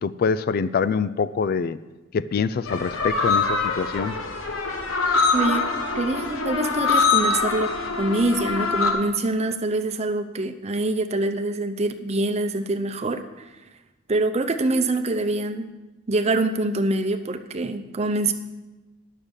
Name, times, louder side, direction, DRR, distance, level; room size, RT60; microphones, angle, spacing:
voice 1, 0.0-1.8 2.1-4.2, left 5 dB, 50° left, 14 dB, 0.3 m, -25 dB
sound 1, 2.7-8.9, left 4 dB, 80° left, 1.4 m, -24 dB
voice 2, 5.3-5.7 5.9-7.7 8.0-13.2 14.1-15.7 16.1-18.3, right 2 dB, 30° right, 7 dB, 0.7 m, -25 dB
10.0 x 6.5 x 7.2 m, 1.1 s
head